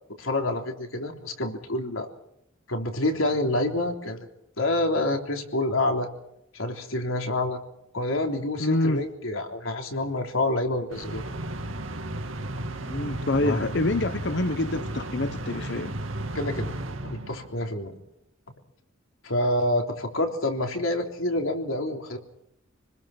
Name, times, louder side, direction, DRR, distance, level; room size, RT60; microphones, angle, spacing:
voice 1, 0.2-2.1 2.7-4.3 4.6-6.1 6.5-7.6 7.9-11.3 13.4-13.6 16.3-16.7 17.0-17.9 19.2-22.2, left 1 dB, 90° left, 3 dB, 3.4 m, -27 dB
voice 2, 8.6-9.0 12.8-15.9, left 2 dB, 60° left, 10 dB, 0.9 m, -27 dB
sound 1, 10.9-17.7, right 1 dB, 80° right, 2.3 m, -34 dB
26.5 x 20.5 x 5.9 m, 0.78 s
head